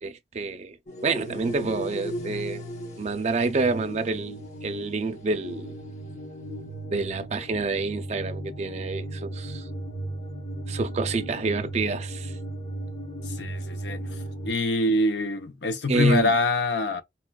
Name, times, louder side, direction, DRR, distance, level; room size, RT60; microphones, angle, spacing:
voice 1, 0.0-0.8 1.0-2.6 3.0-5.7 6.9-9.7 10.7-12.4 15.9-16.4, right 3 dB, 40° right, 0.5 m, -28 dB
sound 1, 0.9-14.5, right 1 dB, 45° left, 0.9 m, -36 dB
voice 2, 13.4-14.0 14.4-17.0, left 2 dB, 75° left, 0.7 m, -24 dB
4.2 x 2.2 x 2.3 m
head